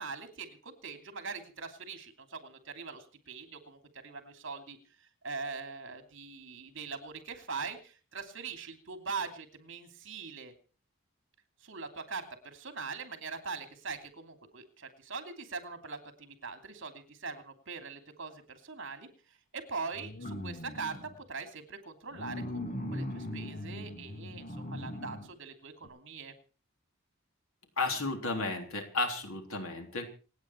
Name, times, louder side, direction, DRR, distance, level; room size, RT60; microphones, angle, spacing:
voice 1, 0.0-10.5 11.6-26.3, right 4 dB, 60° right, 7 dB, 2.9 m, -42 dB
sound 1, 19.9-21.2 22.1-25.3 25.8-25.9, left 1 dB, 40° left, 2.9 m, -40 dB
voice 2, 27.8-30.1, left 3 dB, 90° left, 4 dB, 3.6 m, -33 dB
27.5 x 9.2 x 4.6 m, 0.37 s
head